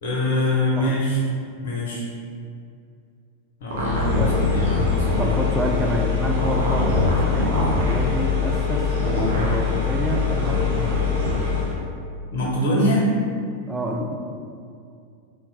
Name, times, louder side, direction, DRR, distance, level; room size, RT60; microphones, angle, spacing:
voice 1, 0.0-1.2 1.6-2.0 3.6-5.6 12.3-13.1, left 1 dB, 55° left, -4 dB, 0.7 m, -24 dB
sound 1, 3.7-5.3 6.2-8.0 8.9-9.6 10.4-11.3, equal, 60° right, 0.5 m, -25 dB
sound 2, 3.7-11.8, left 6 dB, 75° right, 1.0 m, -24 dB
voice 2, 5.2-11.2 13.7-14.1, equal, 5° right, 1 dB, 0.3 m, -28 dB
3.6 x 2.1 x 2.8 m, 2.4 s
figure-of-eight pair, 90°, 0 cm